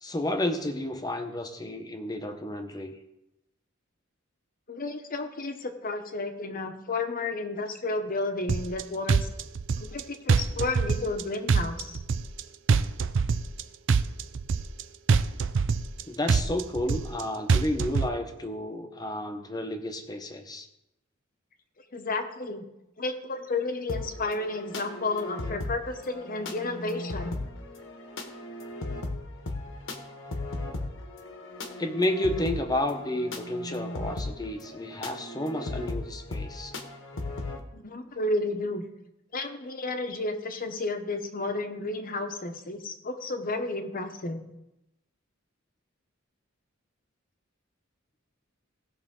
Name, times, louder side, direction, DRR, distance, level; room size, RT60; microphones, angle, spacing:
voice 1, 0.0-3.0 16.1-20.7 31.8-36.7, left 1 dB, 20° left, 6 dB, 0.9 m, -31 dB
voice 2, 4.7-9.3 9.8-12.0 21.9-22.7 23.0-27.4 37.7-38.8 39.3-44.4, left 2 dB, 45° left, 6 dB, 1.0 m, -32 dB
sound 1, 8.5-8.8 9.1-10.0 10.3-11.2 11.5-12.4 12.7-13.6 13.9-14.8 15.1-16.0 16.3-17.2 17.5-18.1, right 5 dB, 65° right, 0.5 m, -24 dB
sound 2, 23.9-37.6, left 2 dB, 65° left, 1.2 m, -37 dB
17.5 x 6.0 x 3.7 m, 0.88 s
head